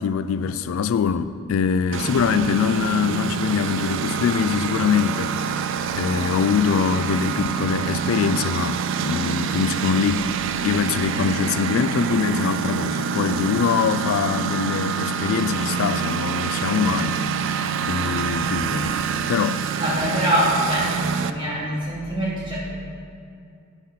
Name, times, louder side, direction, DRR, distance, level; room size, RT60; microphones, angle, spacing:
voice 1, 0.0-5.3 5.9-10.3 10.6-19.0 19.3-19.6, left 6 dB, 70° left, 0.3 m, -23 dB
Engine, 1.9-21.3, right 6 dB, 60° right, 0.4 m, -26 dB
voice 2, 19.8-22.6, equal, 25° right, 2.6 m, -24 dB
10.5 x 8.2 x 4.0 m
head